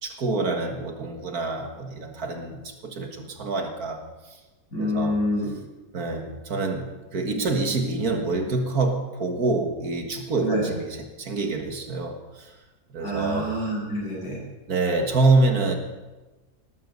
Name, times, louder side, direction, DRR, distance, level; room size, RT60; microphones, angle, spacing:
voice 1, 0.0-4.4 4.8-5.2 5.9-12.5 12.9-13.5 14.7-15.7, right 3 dB, 65° right, 4 dB, 2.1 m, -26 dB
voice 2, 4.7-5.5 10.4-10.7 13.0-14.4, equal, 65° left, -4 dB, 7.8 m, -26 dB
19.0 x 12.5 x 5.4 m, 1.2 s
omnidirectional pair, 1.7 m